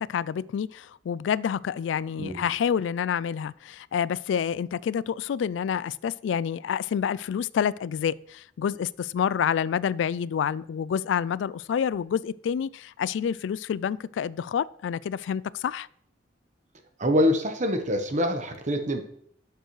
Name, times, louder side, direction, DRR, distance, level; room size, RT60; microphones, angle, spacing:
voice 1, 0.0-15.9, left 8 dB, 80° left, 20 dB, 0.3 m, -28 dB
voice 2, 17.0-19.0, left 1 dB, 40° right, 6 dB, 1.1 m, -25 dB
11.0 x 6.8 x 3.1 m, 0.67 s
head